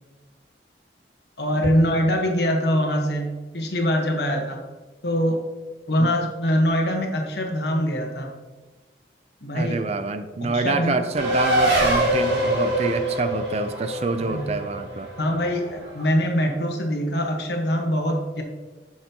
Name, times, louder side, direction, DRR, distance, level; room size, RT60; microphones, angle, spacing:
voice 1, 1.4-3.3 3.5-4.6 5.0-5.4 5.9-8.3 9.4-9.8 10.4-11.0 14.2-14.4 15.2-18.4, equal, 70° left, 2 dB, 1.3 m, -23 dB
voice 2, 9.5-15.1, right 3 dB, 35° right, 10 dB, 0.4 m, -27 dB
Race car auto racing, 11.1-16.1, right 1 dB, 85° right, 2.4 m, -24 dB
8.9 x 6.4 x 2.9 m, 1.2 s
head